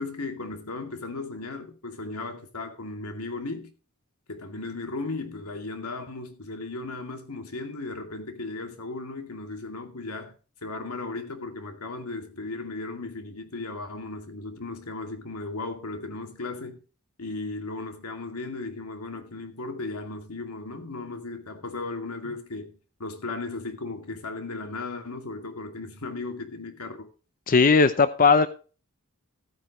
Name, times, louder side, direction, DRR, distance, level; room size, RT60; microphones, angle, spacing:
voice 1, 0.0-3.7 4.3-10.3 10.6-16.8 17.2-27.1, left 3 dB, 85° left, 2.4 m, -36 dB
voice 2, 27.5-28.5, left 4 dB, 40° left, 0.6 m, -18 dB
15.0 x 9.2 x 3.1 m
head